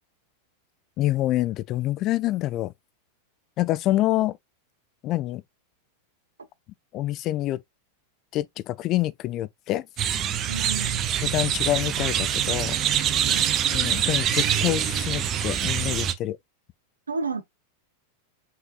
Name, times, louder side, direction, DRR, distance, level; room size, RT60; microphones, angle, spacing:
voice 1, 1.0-2.7 3.6-4.4 5.0-5.4 6.9-7.6 8.3-9.8 11.2-12.8 13.7-16.4, left 15 dB, 35° left, 0.3 m, -26 dB
sound 1, 10.0-16.1, right 9 dB, 30° right, 0.5 m, -25 dB
voice 2, 10.5-11.1 13.2-13.5 17.1-17.4, right 4 dB, 75° right, 0.7 m, -32 dB
5.6 x 3.9 x 2.3 m
figure-of-eight pair, 90°, 0 cm